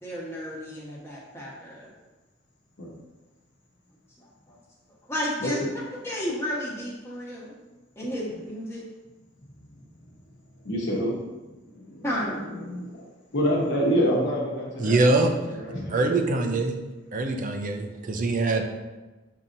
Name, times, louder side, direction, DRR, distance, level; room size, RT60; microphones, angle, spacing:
voice 1, 0.0-1.9 4.2-4.6 5.1-5.6 6.0-7.6 8.0-8.8 12.0-12.4, equal, 15° left, -6 dB, 1.1 m, -32 dB
voice 2, 10.6-11.2 11.7-16.6, equal, 65° left, -2 dB, 1.1 m, -28 dB
voice 3, 14.8-15.3 15.9-16.8 17.1-18.6, right 2 dB, 45° right, 4 dB, 0.5 m, -23 dB
7.0 x 2.8 x 2.5 m, 1.2 s
head